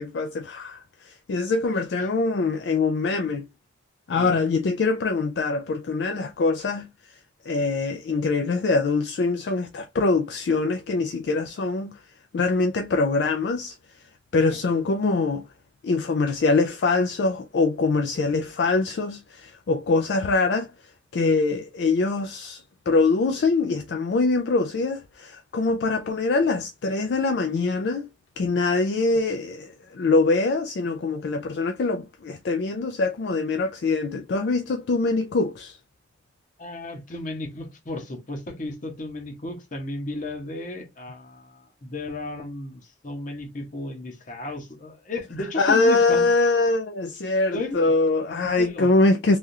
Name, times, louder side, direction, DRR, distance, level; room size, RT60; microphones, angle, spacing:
voice 1, 0.0-3.5 4.1-6.9 7.4-11.9 12.3-13.8 14.3-15.4 15.8-20.7 21.1-28.1 28.4-35.8 45.6-49.4, left 3 dB, 65° left, 0.4 m, -23 dB
voice 2, 36.6-46.3 47.5-47.8 48.3-49.0, left 2 dB, 45° left, 0.9 m, -34 dB
3.3 x 2.4 x 2.7 m
head